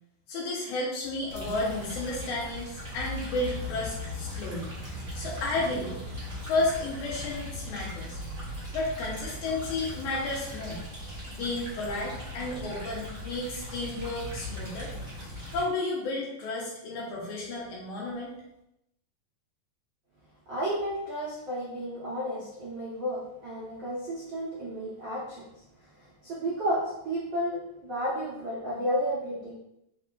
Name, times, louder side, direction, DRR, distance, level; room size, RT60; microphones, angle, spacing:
voice 1, 0.3-4.7 5.2-6.0 6.4-8.2 8.7-10.8 11.3-14.9 15.5-18.3, left 2 dB, 75° left, -4 dB, 2.0 m, -32 dB
sound 1, 1.3-15.6, left 1 dB, 35° right, 0.7 m, -39 dB
voice 2, 20.5-25.4 26.2-29.5, equal, 80° right, -9 dB, 1.0 m, -32 dB
5.8 x 3.4 x 2.4 m, 0.83 s
omnidirectional pair, 4.0 m